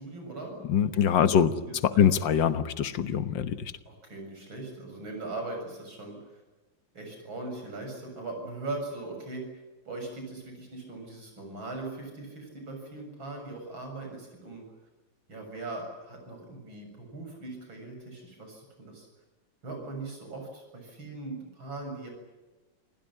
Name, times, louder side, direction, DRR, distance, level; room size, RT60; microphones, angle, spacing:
voice 1, 0.0-2.1 3.9-6.2 6.9-9.5 9.9-14.6 15.3-19.1 19.6-22.1, right 2 dB, 90° right, 3 dB, 7.9 m, -40 dB
voice 2, 0.6-1.5 1.8-3.7, left 8 dB, 70° left, 12 dB, 1.9 m, -24 dB
27.5 x 16.5 x 10.0 m, 1.2 s
omnidirectional pair, 2.1 m